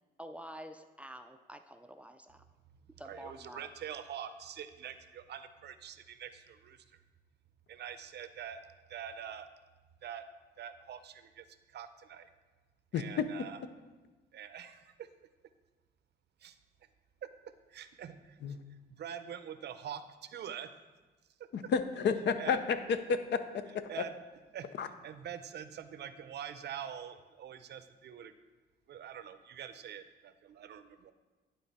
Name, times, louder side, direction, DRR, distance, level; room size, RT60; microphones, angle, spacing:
voice 1, 0.2-2.4 3.0-3.7, equal, 5° right, 8 dB, 0.4 m, -48 dB
voice 2, 3.0-7.0 7.7-8.6 8.9-9.5 10.0-10.2 10.6-12.3 12.9-13.7 14.3-15.1 16.4-16.6 17.7-18.4 18.7-20.7 22.4-22.6 23.9-24.2 24.5-28.3 28.9-31.1, right 9 dB, 60° right, 11 dB, 0.6 m, -45 dB
voice 3, 12.9-13.3 18.4-18.6 21.5-22.6 22.9-23.9 24.8-24.9, left 6 dB, 60° left, 10 dB, 0.6 m, -31 dB
11.0 x 3.8 x 4.2 m, 1.2 s
cardioid pair, 90°, 20 cm